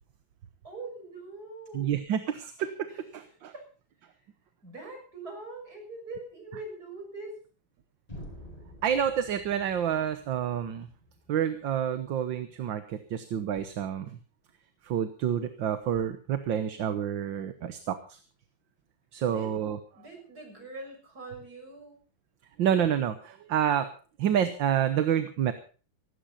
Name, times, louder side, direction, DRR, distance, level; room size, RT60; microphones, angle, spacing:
voice 1, 0.6-2.0 2.9-3.0 3.5-3.7 4.6-7.4 19.2-19.5 19.9-21.9, right 2 dB, 50° right, 2 dB, 7.3 m, -43 dB
voice 2, 1.7-3.5 8.8-10.9 11.3-14.2 14.8-18.2 19.1-19.8 22.6-23.9 24.2-25.5, right 9 dB, 70° right, 10 dB, 1.8 m, -28 dB
sound 1, 8.1-12.0, equal, 15° left, 6.3 m, -49 dB
17.0 x 17.0 x 4.2 m, 0.38 s
omnidirectional pair, 2.2 m